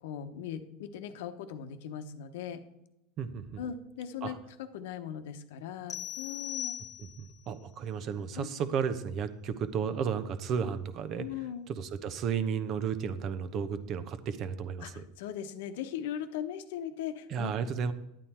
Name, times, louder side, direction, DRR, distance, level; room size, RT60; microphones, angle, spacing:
voice 1, 0.0-2.6 3.6-6.8 8.3-8.5 11.2-11.7 14.8-17.5, left 9 dB, 75° left, 9 dB, 1.0 m, -39 dB
voice 2, 3.2-3.6 4.2-4.4 7.0-11.3 11.7-15.0 17.3-17.9, right 7 dB, 45° right, 12 dB, 0.9 m, -33 dB
sound 1, 5.9-7.4, left 11 dB, 35° left, 0.5 m, -39 dB
11.0 x 8.9 x 4.3 m, 0.85 s
hypercardioid pair, 110°, 0 cm